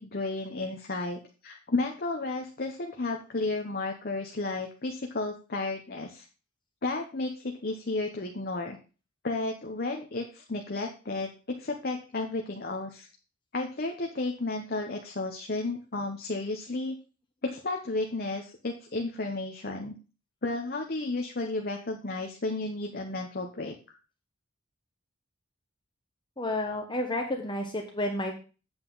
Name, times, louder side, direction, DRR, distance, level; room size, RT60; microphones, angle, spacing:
voice 1, 0.0-6.3 6.8-8.8 9.2-11.3 11.6-13.1 13.5-16.9 17.4-19.9 20.4-23.7, left 2 dB, 45° left, 3 dB, 0.9 m, -33 dB
voice 2, 26.4-28.3, left 1 dB, 20° left, 2 dB, 1.1 m, -31 dB
8.0 x 7.9 x 4.0 m, 0.34 s
head